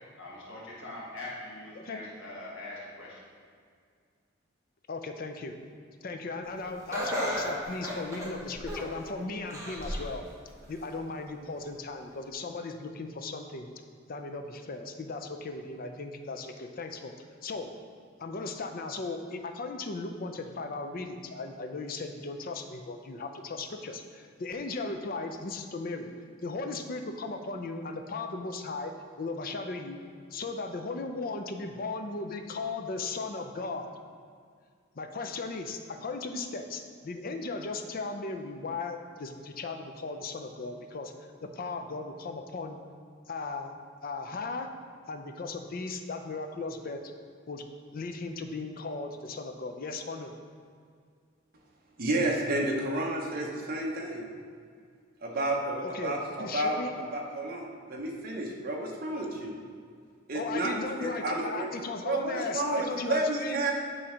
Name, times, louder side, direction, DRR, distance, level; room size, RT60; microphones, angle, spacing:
voice 1, 0.0-3.2, left 2 dB, 70° left, -6 dB, 1.4 m, -42 dB
voice 2, 4.9-5.6 6.0-10.3 10.7-13.7 14.1-17.1 17.4-17.7 18.2-26.1 26.4-28.9 29.2-30.0 30.3-33.9 34.9-41.1 41.4-42.8 43.3-43.7 44.0-44.7 45.1-47.1 47.5-47.6 47.9-50.3 55.8-56.9 60.3-63.7, left 3 dB, 45° left, 6 dB, 0.5 m, -37 dB
Laughter, 6.9-9.0 9.5-10.1 10.6-10.7 11.7-11.8, equal, 15° right, 1.0 m, -34 dB
voice 3, 52.0-54.2 55.2-56.8 57.1-59.6 60.3-61.7 62.0-63.7, right 2 dB, 45° right, -1 dB, 0.8 m, -31 dB
8.6 x 3.2 x 4.9 m, 2.1 s
head